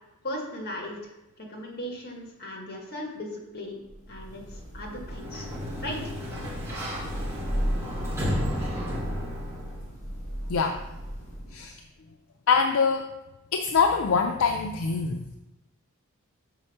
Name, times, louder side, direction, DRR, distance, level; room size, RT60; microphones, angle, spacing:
voice 1, 0.2-1.1 1.4-3.8 4.1-5.5 5.8-6.0, left 1 dB, 50° left, 1 dB, 1.6 m, -37 dB
Thunder / Rain, 3.8-11.8, equal, 35° left, 2.2 m, -36 dB
Sliding door, 5.0-9.8, equal, 10° right, 1.7 m, -33 dB
voice 2, 12.5-13.1 13.5-15.2, left 5 dB, 70° left, 5 dB, 0.5 m, -24 dB
6.5 x 4.3 x 5.5 m, 0.98 s
head